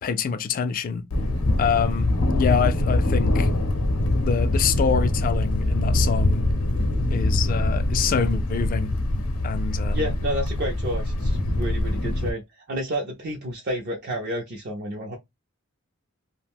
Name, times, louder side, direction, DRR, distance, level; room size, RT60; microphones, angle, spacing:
voice 1, 0.0-1.0 1.6-3.5 4.2-6.4 7.1-8.9 9.4-10.1, left 6 dB, 40° left, 0.3 m, -26 dB
Thunder, 1.1-12.3, left 1 dB, 75° left, 0.6 m, -23 dB
voice 2, 9.9-15.1, equal, 50° right, 0.5 m, -30 dB
2.5 x 2.1 x 3.4 m
head